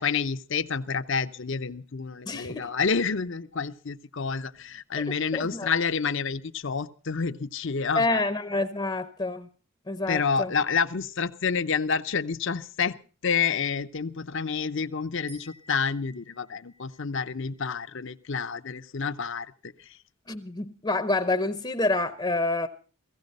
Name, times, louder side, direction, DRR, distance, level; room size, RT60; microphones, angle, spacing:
voice 1, 0.0-8.2 10.1-13.0 13.2-19.5, left 5 dB, 55° left, 0.7 m, -29 dB
voice 2, 2.3-2.7 5.1-5.7 7.9-9.5 9.9-10.5 20.3-22.7, left 2 dB, 20° left, 0.7 m, -28 dB
sound 1, 15.3-18.7, right 1 dB, 90° right, 5.5 m, -56 dB
16.5 x 16.0 x 5.3 m
head